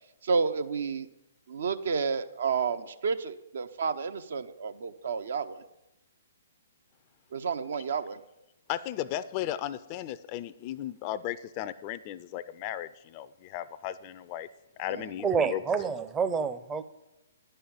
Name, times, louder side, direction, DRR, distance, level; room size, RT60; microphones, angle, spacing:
voice 1, 0.2-1.1 1.5-5.6 7.3-8.2 14.8-15.1, right 5 dB, 65° right, 0.7 m, -30 dB
voice 2, 8.7-14.5 14.8-15.3 15.5-15.6, left 12 dB, 35° left, 0.4 m, -35 dB
voice 3, 15.2-16.8, right 5 dB, 15° right, 0.6 m, -28 dB
10.0 x 5.6 x 8.5 m
figure-of-eight pair, 125°, 0 cm